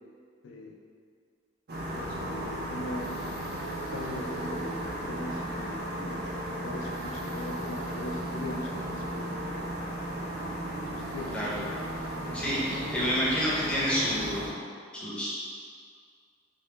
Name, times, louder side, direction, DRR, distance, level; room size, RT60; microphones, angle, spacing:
voice 1, 0.4-0.8 1.9-3.2 3.9-9.7 10.8-11.4, left 2 dB, 80° left, 1 dB, 0.4 m, -40 dB
sound 1, 1.7-14.5, right 1 dB, 55° right, 0.4 m, -35 dB
voice 2, 11.3-11.6 12.3-14.6 14.9-15.4, equal, 5° left, -8 dB, 0.5 m, -29 dB
2.9 x 2.1 x 3.2 m, 2.1 s
head